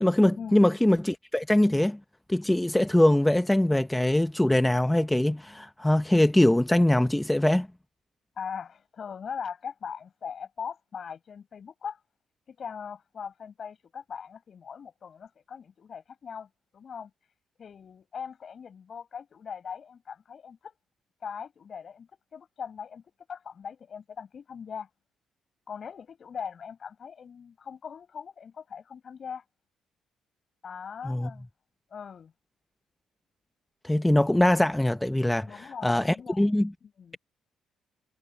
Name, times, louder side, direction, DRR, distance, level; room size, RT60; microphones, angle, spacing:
voice 1, 0.0-2.0 2.3-7.7 31.0-31.3 33.8-36.7, left 1 dB, 5° left, 0.6 m, -22 dB
voice 2, 8.4-12.0 12.5-17.1 17.6-20.7 21.2-23.0 23.3-24.9 25.7-29.4 30.6-31.5 31.9-32.3 35.5-36.5 36.8-37.2, left 7 dB, 50° left, 7.9 m, -40 dB
cardioid pair, 90°, 0 cm